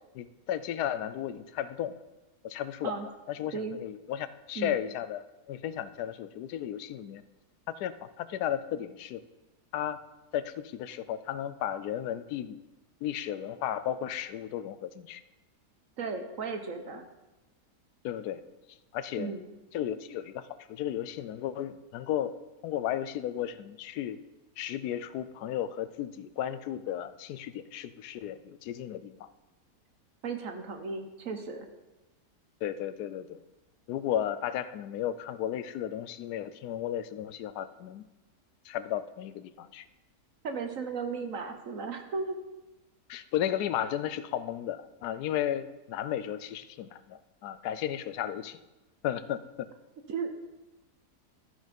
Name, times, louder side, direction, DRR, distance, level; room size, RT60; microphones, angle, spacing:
voice 1, 0.1-1.9 2.4-2.9 3.3-7.2 7.7-9.2 9.7-10.0 10.3-12.6 13.0-15.2 18.0-18.4 18.9-19.3 19.7-22.3 22.6-24.2 24.6-29.3 32.6-33.4 33.9-38.0 38.7-39.8 43.1-48.6 49.0-49.4, left 10 dB, 80° left, 14 dB, 1.1 m, -34 dB
voice 2, 16.0-17.1 19.2-19.4 30.2-31.7 40.4-42.4 50.1-50.3, right 4 dB, 60° right, 6 dB, 1.2 m, -35 dB
13.0 x 6.4 x 5.2 m, 1.0 s
omnidirectional pair, 1.7 m